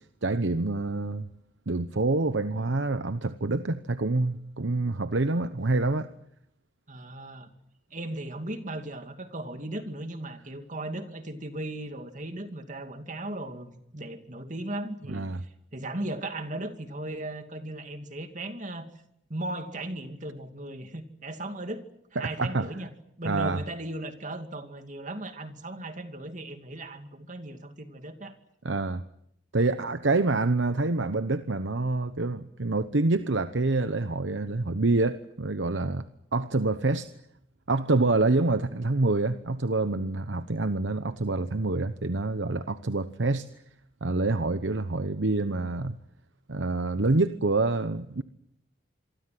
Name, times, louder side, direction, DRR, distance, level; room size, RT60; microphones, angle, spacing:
voice 1, 0.2-1.3 1.7-6.1 15.1-15.4 22.2-22.7 23.2-23.6 28.6-29.0 29.5-36.1 36.3-37.1 37.7-43.5 44.0-46.0 46.5-48.2, right 3 dB, 80° right, 1.0 m, -26 dB
voice 2, 6.9-7.5 7.9-18.9 19.3-21.8 22.1-22.9 23.2-28.4, right 1 dB, 45° right, 2.6 m, -37 dB
26.5 x 23.5 x 7.8 m
head